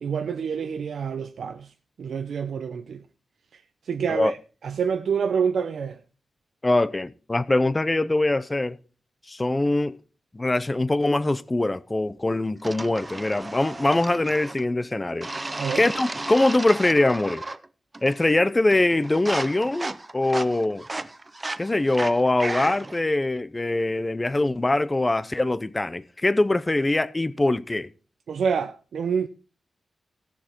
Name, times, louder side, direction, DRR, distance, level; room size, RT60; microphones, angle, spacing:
voice 1, 0.0-1.7 2.0-3.0 3.9-4.4 4.6-6.0 15.6-15.8 28.3-29.3, right 6 dB, 80° right, 0.6 m, -27 dB
voice 2, 6.6-8.8 9.3-10.0 10.3-15.3 15.7-17.4 18.0-20.8 21.6-27.9, left 2 dB, 20° left, 0.6 m, -23 dB
sound 1, 12.6-14.7 15.2-17.7 17.9-18.4 18.7-23.0, right 2 dB, 25° right, 0.6 m, -34 dB
16.0 x 7.1 x 4.4 m
wide cardioid pair, 100°, 0 cm